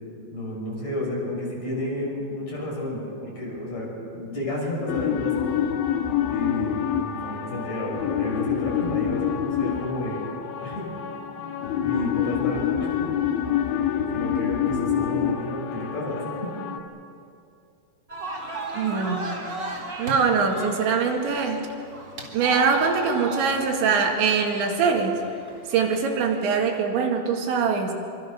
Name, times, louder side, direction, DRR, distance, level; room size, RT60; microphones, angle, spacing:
voice 1, 0.3-5.5 6.3-10.2 10.6-10.9 11.4-11.5 11.8-13.0 13.7-13.8 14.1-16.2, left 1 dB, 40° left, -3 dB, 7.2 m, -31 dB
sound 1, 4.9-16.8, left 9 dB, 85° left, 3.8 m, -27 dB
sound 2, 18.1-26.7, right 2 dB, 25° right, 3.7 m, -36 dB
voice 2, 18.7-19.3 19.6-19.7 20.0-21.7 22.3-25.2 25.7-27.9, right 5 dB, 80° right, 2 dB, 4.4 m, -23 dB
25.5 x 25.0 x 6.7 m, 2.5 s
omnidirectional pair, 5.2 m